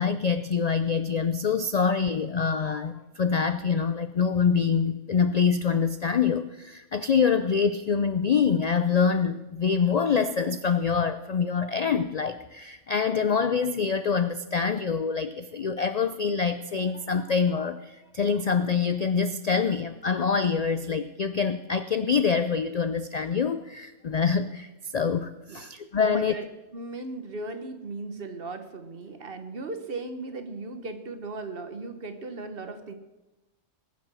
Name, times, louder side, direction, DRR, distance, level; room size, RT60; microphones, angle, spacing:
voice 1, 0.0-26.3, left 6 dB, 60° left, 11 dB, 0.4 m, -25 dB
voice 2, 26.0-26.5 26.7-32.9, right 3 dB, 50° right, 8 dB, 1.3 m, -37 dB
20.5 x 7.5 x 6.3 m, 1.0 s
omnidirectional pair, 1.3 m